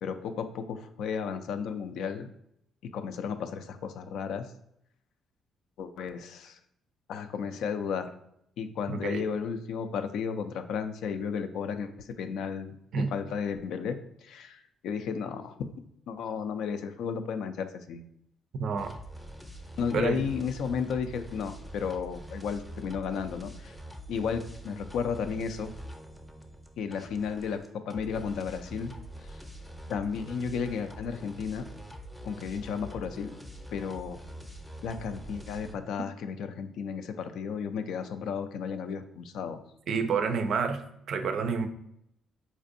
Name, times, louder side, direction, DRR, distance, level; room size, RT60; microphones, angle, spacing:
voice 1, 0.0-2.3 2.9-4.5 5.8-6.6 7.1-8.1 8.6-12.8 13.1-15.5 16.1-18.0 19.8-23.7 24.1-25.7 26.8-28.9 29.9-31.7 32.2-33.3 33.7-34.2 34.8-39.6, left 6 dB, 75° left, 9 dB, 0.3 m, -33 dB
voice 2, 8.9-9.2 12.9-13.1 18.6-19.0 19.9-20.2 39.9-41.7, right 5 dB, 65° right, 8 dB, 0.4 m, -29 dB
sound 1, 18.8-35.8, equal, 10° left, 0.6 m, -45 dB
4.2 x 2.5 x 2.5 m, 0.76 s
supercardioid pair, 70°, 0 cm